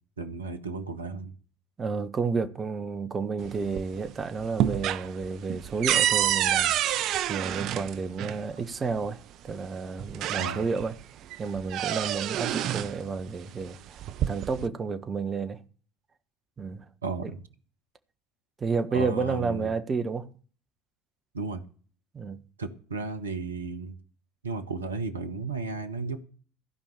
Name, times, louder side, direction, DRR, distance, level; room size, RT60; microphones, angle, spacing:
voice 1, 0.2-1.3 10.4-10.7 17.0-17.4 18.9-19.7 21.3-21.6 22.6-23.9 24.4-26.2, right 4 dB, 80° right, 1.2 m, -34 dB
voice 2, 1.8-9.2 9.4-11.0 11.4-15.6 16.6-16.8 18.6-20.3 22.1-22.4, right 4 dB, 30° right, 1.5 m, -31 dB
sound 1, 3.4-4.1 4.4-8.4 9.5-9.6 10.0-10.9 11.3-13.0 13.9-14.7, right 12 dB, 50° right, 0.6 m, -28 dB
15.5 x 5.4 x 8.5 m
figure-of-eight pair, 60°, 0 cm